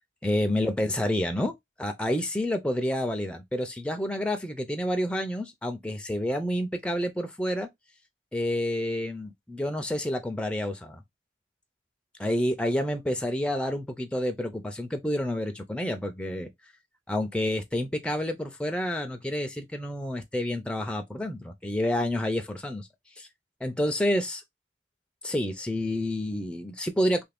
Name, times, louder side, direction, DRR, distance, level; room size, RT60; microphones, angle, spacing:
voice 1, 0.2-1.5 1.8-7.7 8.3-11.0 12.2-16.5 17.1-22.9 23.2-23.3 23.6-24.4 25.2-27.2, left 1 dB, 5° left, 0.4 m, -29 dB
2.6 x 2.5 x 3.3 m
head